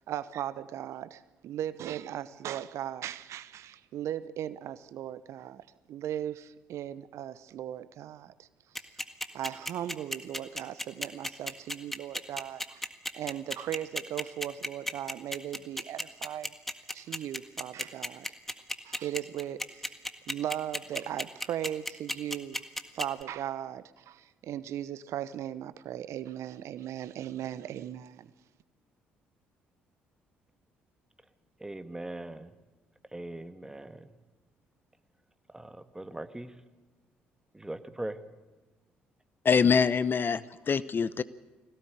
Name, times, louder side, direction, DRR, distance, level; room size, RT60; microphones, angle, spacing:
voice 1, 0.0-8.5 9.3-12.9 13.1-16.5 16.9-18.3 18.8-20.0 20.3-22.6 22.9-28.3, right 11 dB, 60° right, 16 dB, 0.8 m, -37 dB
sound 1, 8.7-23.2, equal, 5° left, 1.8 m, -33 dB
voice 2, 31.6-32.5 33.1-34.1 35.5-36.5 37.5-38.2, right 1 dB, 10° right, 10 dB, 1.7 m, -40 dB
voice 3, 39.4-41.2, left 6 dB, 40° left, 17 dB, 0.8 m, -24 dB
21.0 x 17.5 x 8.9 m, 1.2 s
hypercardioid pair, 50°, 5 cm